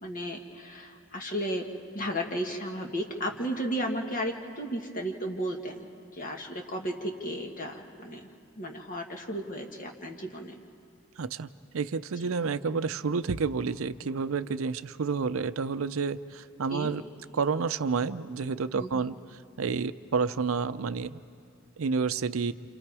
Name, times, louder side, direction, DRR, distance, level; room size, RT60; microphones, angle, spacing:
voice 1, 0.0-1.6 1.9-5.9 6.1-8.3 8.5-10.6 16.7-16.9 18.7-18.9, equal, 40° left, 3 dB, 1.6 m, -34 dB
voice 2, 11.2-11.5 11.7-17.0 17.3-19.2 19.6-21.2 21.8-22.5, right 5 dB, 85° right, 13 dB, 0.6 m, -29 dB
29.0 x 28.0 x 4.8 m, 2.4 s
head